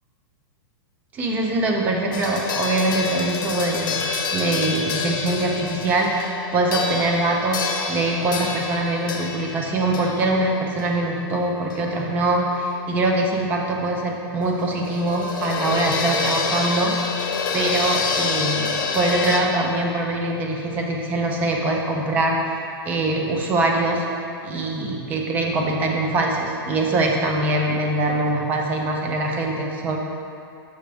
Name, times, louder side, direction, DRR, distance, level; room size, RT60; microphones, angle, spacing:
voice 1, 1.1-22.6 22.9-24.0 24.4-30.0, right 2 dB, 10° right, 1 dB, 0.4 m, -23 dB
sound 1, 2.1-12.0 12.3-12.4 14.5-19.4, left 5 dB, 50° left, 0.7 m, -27 dB
6.7 x 6.3 x 3.4 m, 2.6 s
supercardioid pair, 175°, 13 cm